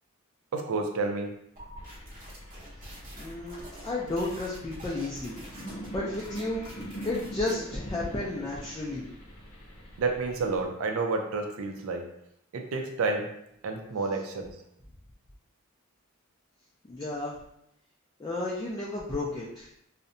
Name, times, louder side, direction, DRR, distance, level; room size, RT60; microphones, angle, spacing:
voice 1, 0.5-1.3 10.0-12.0 12.5-13.3 13.6-14.5, right 3 dB, 70° right, 3 dB, 0.4 m, -30 dB
sound 1, 1.6-7.5, right 1 dB, 40° right, 0.7 m, -47 dB
sound 2, 1.8-10.6, equal, 80° left, 0.6 m, -44 dB
voice 2, 3.1-5.4 5.6-6.6 7.0-9.1 16.9-17.4 18.2-19.7, left 2 dB, 20° left, -5 dB, 0.3 m, -33 dB
2.6 x 2.1 x 2.5 m, 0.76 s
head